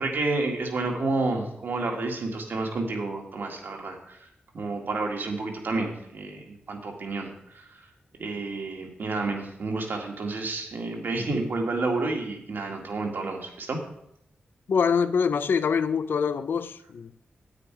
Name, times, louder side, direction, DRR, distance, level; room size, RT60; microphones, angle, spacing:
voice 1, 0.0-4.3 4.5-7.8 8.2-13.8, right 3 dB, 70° right, 1.9 m, -30 dB
voice 2, 14.7-17.1, left 6 dB, 70° left, 0.5 m, -24 dB
9.8 x 8.8 x 4.7 m
wide cardioid pair, 115°, 4 cm